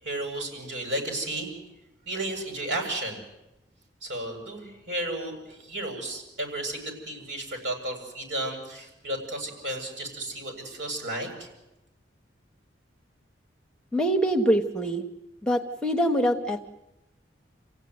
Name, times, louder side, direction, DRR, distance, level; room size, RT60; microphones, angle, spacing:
voice 1, 0.0-1.5 2.0-3.2 4.0-6.8 7.1-11.5, right 1 dB, 75° right, 3 dB, 7.6 m, -33 dB
voice 2, 13.9-15.0 15.4-16.6, equal, 5° left, 3 dB, 1.2 m, -24 dB
29.0 x 16.5 x 9.6 m, 0.98 s
head